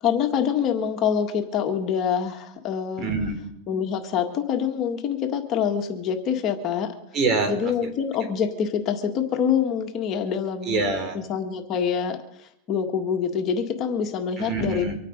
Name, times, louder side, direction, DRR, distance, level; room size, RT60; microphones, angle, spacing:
voice 1, 0.0-3.1 3.7-6.9 7.5-10.8 11.1-12.2 12.7-14.9, left 7 dB, 40° left, 4 dB, 1.8 m, -25 dB
voice 2, 3.0-3.4 7.1-7.9 10.6-11.2 14.4-14.9, right 3 dB, 35° right, 5 dB, 4.0 m, -25 dB
25.0 x 9.0 x 5.3 m, 0.76 s
supercardioid pair, 130°, 0 cm